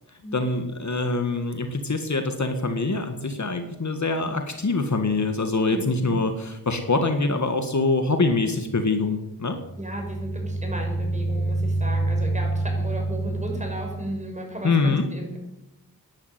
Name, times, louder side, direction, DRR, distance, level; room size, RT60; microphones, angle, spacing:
voice 1, 0.3-9.6 14.6-15.1, left 3 dB, 50° left, 6 dB, 1.8 m, -24 dB
voice 2, 5.7-6.1 9.8-15.4, right 1 dB, 20° right, 1 dB, 6.3 m, -35 dB
sound 1, 9.6-14.3, right 2 dB, 80° right, 3.9 m, -27 dB
11.0 x 10.5 x 9.3 m, 0.92 s
cardioid pair, 60°, 37 cm